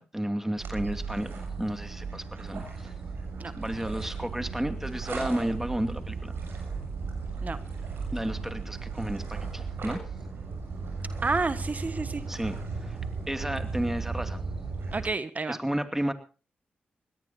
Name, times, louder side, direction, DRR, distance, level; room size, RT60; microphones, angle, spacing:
voice 1, 0.0-2.9 3.6-6.3 8.1-10.1 12.3-13.0 13.3-14.4 15.5-16.1, right 1 dB, 10° right, 7 dB, 2.5 m, -32 dB
sound 1, 0.6-15.1, right 4 dB, 70° right, 6.9 m, -36 dB
voice 2, 11.2-12.2 14.9-15.6, right 3 dB, 40° right, 12 dB, 1.4 m, -30 dB
22.0 x 17.5 x 2.8 m, 0.35 s
supercardioid pair, 40°, 4 cm